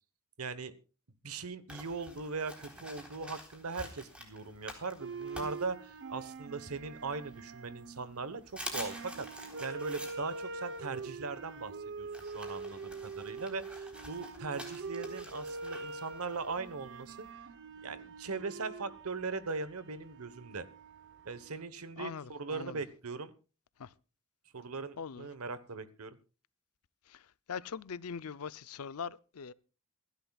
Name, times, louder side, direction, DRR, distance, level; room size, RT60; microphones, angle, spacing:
voice 1, 0.4-0.7 1.2-17.3 17.8-20.7 21.2-23.3 24.5-26.1, right 4 dB, 80° right, 1.2 m, -40 dB
sound 1, 1.7-6.3 6.8-7.7 8.1-8.2 8.5-17.3, equal, 5° right, 3.8 m, -48 dB
sound 2, 5.0-21.7, right 4 dB, 55° right, 0.9 m, -44 dB
voice 2, 22.0-22.8 23.8-23.9 25.0-25.3 27.1-29.5, left 6 dB, 85° left, 0.6 m, -42 dB
27.0 x 11.5 x 2.4 m
head